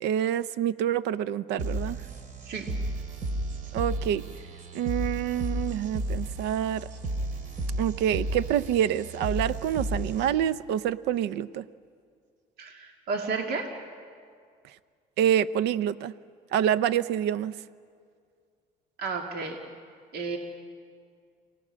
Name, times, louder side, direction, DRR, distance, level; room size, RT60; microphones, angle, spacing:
voice 1, 0.0-2.0 3.7-4.2 4.7-6.9 7.8-11.7 15.2-16.1 16.5-17.5, right 10 dB, 85° right, 16 dB, 0.7 m, -27 dB
sound 1, 1.6-10.6, right 1 dB, 50° right, 2.6 m, -33 dB
voice 2, 12.6-13.7 19.0-19.6 20.1-20.4, right 4 dB, 70° right, 2 dB, 2.3 m, -32 dB
29.0 x 19.0 x 6.3 m, 2.1 s
cardioid pair, 110°, 17 cm